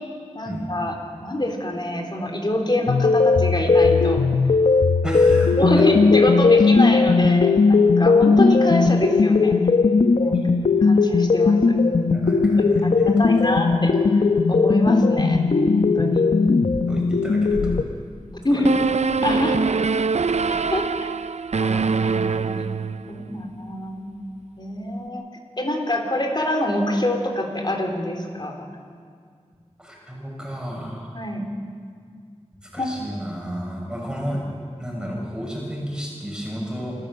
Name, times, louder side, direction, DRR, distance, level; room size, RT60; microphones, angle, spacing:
voice 1, 0.3-4.2 5.0-5.2 5.6-9.6 10.2-11.6 12.6-12.9 13.2-13.9 14.5-16.2 18.4-18.7 19.2-19.7 20.7-20.9 21.6-22.7 23.1-24.0 24.5-25.2 25.6-28.7 31.1-31.5 32.8-32.9, left 1 dB, 40° left, 2 dB, 3.5 m, -25 dB
sound 1, 2.9-17.8, left 4 dB, 85° left, 0.8 m, -18 dB
voice 2, 5.0-5.6 10.3-10.5 12.1-13.5 16.9-17.8 18.5-18.7 23.3-23.4 29.8-31.1 32.6-34.4 34.8-37.0, equal, 5° right, -2 dB, 7.1 m, -32 dB
sound 2, 18.6-23.3, right 5 dB, 70° right, 0.5 m, -23 dB
28.0 x 13.5 x 7.6 m, 2.1 s
wide cardioid pair, 55°, 12 cm